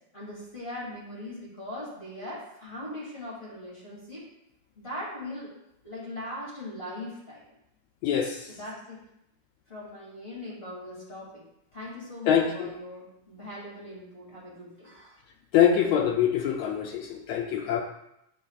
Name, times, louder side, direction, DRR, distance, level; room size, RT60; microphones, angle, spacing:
voice 1, 0.1-4.2 4.8-5.5 5.8-7.4 8.1-9.0 9.7-11.4 11.7-15.2, left 1 dB, 20° left, -6 dB, 2.1 m, -40 dB
voice 2, 8.0-8.4 12.3-12.7 15.5-17.8, left 9 dB, 85° left, 2 dB, 1.5 m, -24 dB
10.5 x 4.1 x 2.4 m, 0.82 s
omnidirectional pair, 3.6 m